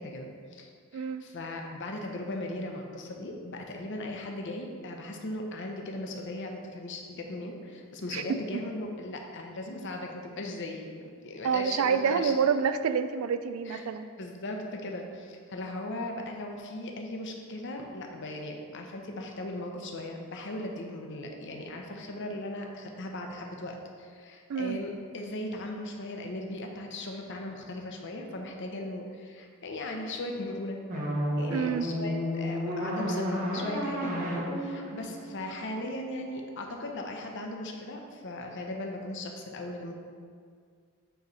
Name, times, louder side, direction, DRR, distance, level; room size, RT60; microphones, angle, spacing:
voice 1, 0.0-12.5 13.6-13.9 14.2-30.8 31.4-39.9, left 1 dB, 60° left, 2 dB, 0.7 m, -38 dB
voice 2, 11.4-14.1 24.5-24.8 31.5-31.9, right 6 dB, 80° right, 10 dB, 0.3 m, -27 dB
sound 1, 30.9-36.0, equal, 40° right, 1.0 m, -32 dB
7.9 x 3.1 x 4.0 m, 2.1 s
head